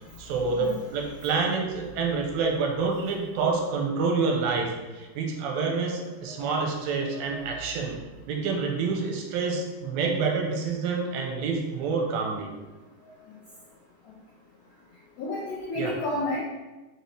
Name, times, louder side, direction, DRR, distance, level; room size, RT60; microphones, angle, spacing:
voice 1, 0.2-8.0 8.3-12.5 15.8-15.9, right 4 dB, 85° right, 1 dB, 2.4 m, -27 dB
voice 2, 6.2-6.6 7.0-7.6 15.2-16.4, left 1 dB, 80° left, -7 dB, 1.4 m, -32 dB
6.1 x 2.8 x 3.1 m, 1.1 s
omnidirectional pair, 4.1 m